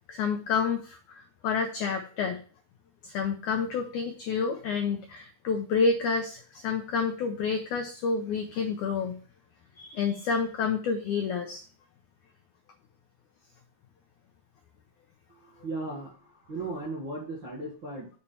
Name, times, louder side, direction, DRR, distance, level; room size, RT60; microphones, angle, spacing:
voice 1, 0.1-2.4 3.0-9.2 9.8-11.6, left 5 dB, 90° left, 5 dB, 1.7 m, -29 dB
voice 2, 15.3-18.1, right 2 dB, 45° right, -5 dB, 1.7 m, -37 dB
7.4 x 4.5 x 5.6 m, 0.41 s
omnidirectional pair, 4.5 m